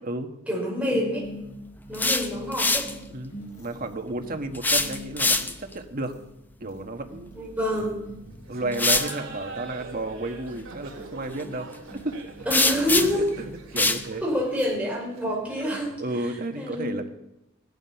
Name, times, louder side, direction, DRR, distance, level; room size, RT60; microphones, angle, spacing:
voice 1, 0.5-1.3 1.9-2.9 7.4-8.0 12.4-13.3 14.2-15.9 16.6-16.9, equal, 5° right, -3 dB, 4.9 m, -27 dB
sound 1, 0.9-16.3, equal, 40° left, 5.4 m, -45 dB
sound 2, 1.8-2.9 4.5-5.7 7.8-7.9 8.7-9.1 12.5-13.3 13.8-14.0, left 3 dB, 10° left, 0.7 m, -23 dB
voice 2, 3.1-6.1 6.6-7.3 8.5-12.3 12.8-13.4 13.7-14.2 16.0-17.1, right 2 dB, 45° right, 6 dB, 1.4 m, -32 dB
Laughter, 8.5-15.9, right 3 dB, 70° right, 3.1 m, -43 dB
16.5 x 12.0 x 5.9 m, 0.90 s
head